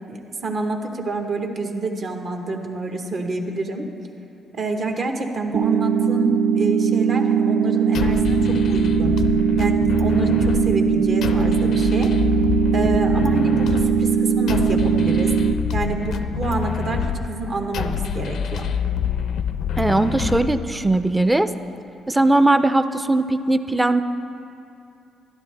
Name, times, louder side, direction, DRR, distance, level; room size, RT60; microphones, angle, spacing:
voice 1, 0.1-3.9 4.5-9.2 9.6-12.1 12.7-15.3 15.7-18.7, right 3 dB, 55° right, 3 dB, 0.9 m, -27 dB
sound 1, 5.5-15.5, right 6 dB, 75° right, 0.4 m, -20 dB
sound 2, 7.9-21.0, left 7 dB, 70° left, 0.4 m, -26 dB
voice 2, 19.8-21.5 22.1-24.0, right 2 dB, 10° right, 10 dB, 0.4 m, -19 dB
12.0 x 11.0 x 3.3 m, 2.7 s
cardioid pair, 90°, 0 cm